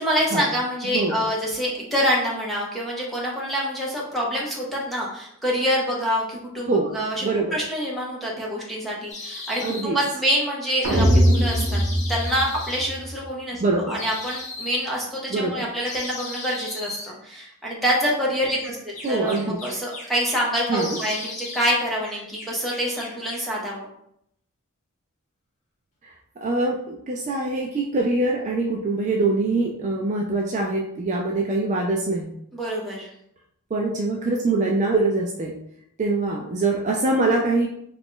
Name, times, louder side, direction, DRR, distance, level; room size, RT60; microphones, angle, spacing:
voice 1, 0.0-11.8 12.1-13.6 13.9-23.9 32.5-33.1, equal, ahead, -5 dB, 0.8 m, -26 dB
voice 2, 7.2-7.6 9.6-10.0 13.6-14.0 15.3-15.7 19.0-19.6 20.7-21.0 26.0-26.1 26.4-32.3 33.7-35.5 36.0-37.7, right 2 dB, 35° right, -1 dB, 0.3 m, -23 dB
sound 1, 9.1-9.9 10.7-12.9 13.9-14.9 15.8-17.1 18.6-20.4 20.7-21.8 22.0-23.5, left 2 dB, 30° left, 0.8 m, -36 dB
sound 2, 10.8-13.1, equal, 80° right, 0.7 m, -20 dB
2.9 x 2.5 x 3.6 m, 0.73 s
head